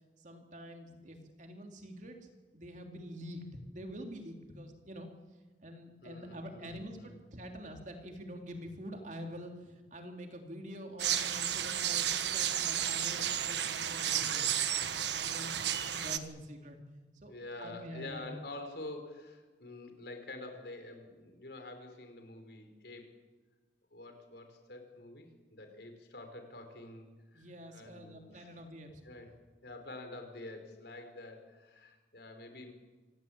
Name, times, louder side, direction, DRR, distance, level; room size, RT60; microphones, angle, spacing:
voice 1, 0.2-2.2 2.5-5.1 5.6-16.8 17.1-17.3 17.6-18.4 27.3-29.0, equal, 45° right, 3 dB, 3.3 m, -46 dB
voice 2, 6.0-7.2 17.3-23.2 23.9-28.5 29.0-29.3 29.6-32.7, left 2 dB, 60° left, 6 dB, 4.6 m, -47 dB
sound 1, 11.0-16.2, right 10 dB, 75° right, 1.5 m, -32 dB
26.5 x 18.0 x 8.8 m, 1.3 s
head